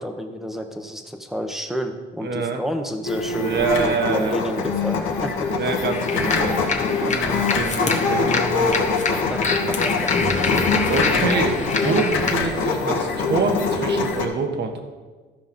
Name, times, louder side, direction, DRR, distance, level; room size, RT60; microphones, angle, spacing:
voice 1, 0.0-5.5 9.3-10.6, equal, ahead, 5 dB, 1.2 m, -30 dB
voice 2, 2.2-2.6 3.3-4.3 5.5-6.7 7.1-8.7 10.8-14.8, right 4 dB, 60° right, 5 dB, 1.5 m, -26 dB
sound 1, 3.0-14.3, left 4 dB, 80° left, 1.5 m, -23 dB
sound 2, 5.9-12.3, left 4 dB, 35° left, 1.4 m, -26 dB
13.5 x 5.8 x 5.3 m, 1.4 s
cardioid pair, 90°, 20 cm